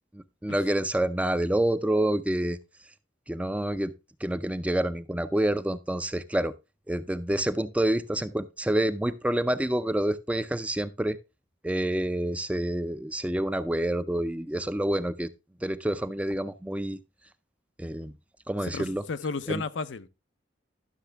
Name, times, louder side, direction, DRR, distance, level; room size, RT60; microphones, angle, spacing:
voice 1, 0.4-2.6 3.3-3.9 4.2-6.5 6.9-11.2 11.6-15.3 15.6-17.0 17.8-18.1 18.5-19.0 19.5-19.6, right 1 dB, 5° right, 0.4 m, -27 dB
voice 2, 18.6-20.1, left 4 dB, 75° left, 0.6 m, -33 dB
12.0 x 6.5 x 3.4 m
head